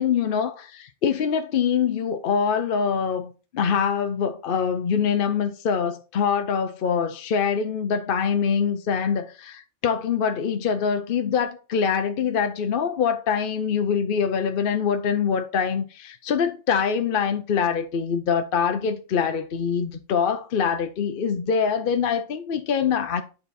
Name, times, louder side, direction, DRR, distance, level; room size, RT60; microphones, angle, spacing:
voice 1, 0.0-23.2, left 6 dB, 55° left, 0.7 m, -24 dB
9.4 x 4.0 x 4.1 m
omnidirectional pair, 1.3 m